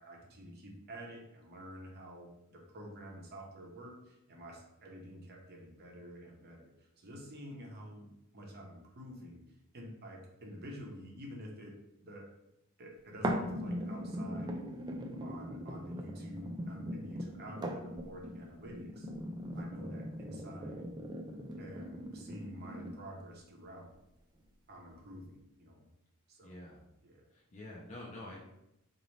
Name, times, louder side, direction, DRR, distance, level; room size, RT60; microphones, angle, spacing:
voice 1, 0.0-9.4 9.7-11.7 12.0-12.3 12.8-14.7 15.2-19.1 19.5-20.9 21.6-23.9 24.7-25.9 26.3-26.6 27.0-27.3, equal, 50° right, 0 dB, 0.8 m, -49 dB
sound 1, 13.2-23.2 23.8-23.9, equal, 20° right, 0.3 m, -40 dB
voice 2, 26.4-26.8 27.3-28.4, left 1 dB, 35° left, -3 dB, 0.5 m, -47 dB
4.0 x 2.6 x 3.1 m, 0.86 s
head